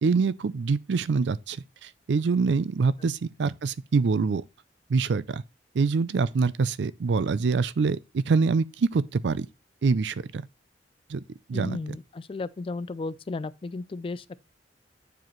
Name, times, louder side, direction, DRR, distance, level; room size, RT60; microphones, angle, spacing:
voice 1, 0.0-4.4 4.9-5.4 5.7-9.5 9.8-10.5 11.1-11.2 11.5-11.8, right 4 dB, 80° right, 0.4 m, -25 dB
voice 2, 11.5-14.5, left 3 dB, 30° left, 0.3 m, -34 dB
9.1 x 4.9 x 3.1 m
head